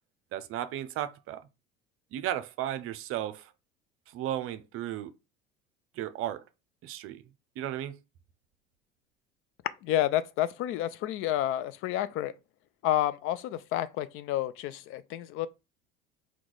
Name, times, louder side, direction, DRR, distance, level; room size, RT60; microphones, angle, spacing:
voice 1, 0.3-1.4 2.1-3.5 4.1-5.1 6.0-6.4 6.8-7.2 7.6-8.0, right 12 dB, 50° right, 0.6 m, -34 dB
voice 2, 9.8-12.3 12.8-15.5, left 12 dB, 50° left, 0.4 m, -30 dB
4.5 x 2.3 x 3.8 m
hypercardioid pair, 70°, 29 cm